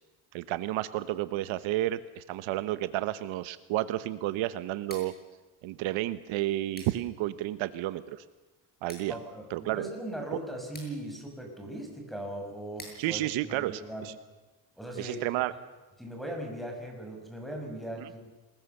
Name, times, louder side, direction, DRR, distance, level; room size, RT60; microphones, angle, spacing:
voice 1, 0.3-5.1 5.6-8.2 8.8-9.2 9.5-9.9 13.0-14.1 15.0-15.5 18.0-18.1, right 15 dB, 80° right, 13 dB, 1.2 m, -31 dB
Scissors, 4.7-14.6, left 2 dB, 20° left, 7.8 m, -55 dB
voice 2, 9.1-14.1 14.8-15.2 16.0-18.3, right 1 dB, ahead, 3 dB, 6.2 m, -39 dB
26.5 x 21.5 x 6.8 m, 1.2 s
cardioid pair, 135°, 46 cm